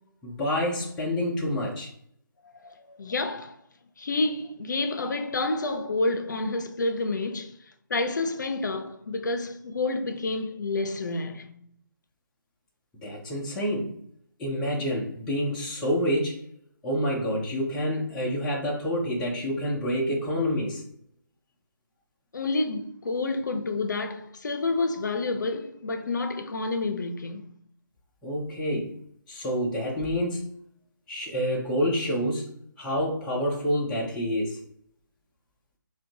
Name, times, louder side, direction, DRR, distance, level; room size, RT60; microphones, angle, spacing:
voice 1, 0.2-1.9 13.0-13.9 14.4-16.4 16.8-20.8 28.2-28.9 29.3-30.5 31.1-32.5 32.8-34.6, equal, 5° left, 0.3 m, -28 dB
voice 2, 2.6-3.5 4.0-7.5 7.9-11.6 22.3-27.5, left 3 dB, 65° left, 0.5 m, -29 dB
5.6 x 2.2 x 2.7 m
figure-of-eight pair, 160°, 11 cm